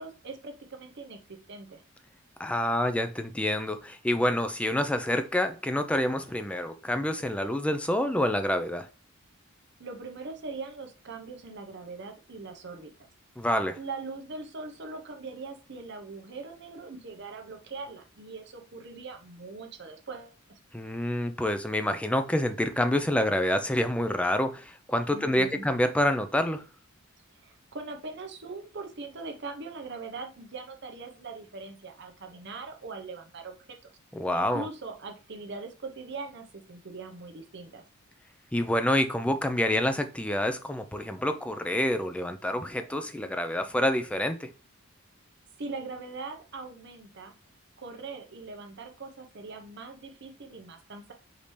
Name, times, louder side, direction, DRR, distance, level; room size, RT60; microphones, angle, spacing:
voice 1, 0.0-1.8 9.8-12.9 13.8-20.3 25.1-25.6 27.4-33.9 34.3-37.8 45.6-47.3 47.8-51.1, right 3 dB, 55° right, 0.8 m, -41 dB
voice 2, 2.4-8.9 13.4-13.8 20.7-26.6 34.1-34.7 38.5-44.5, left 1 dB, 5° left, 0.3 m, -27 dB
5.1 x 2.8 x 3.1 m
head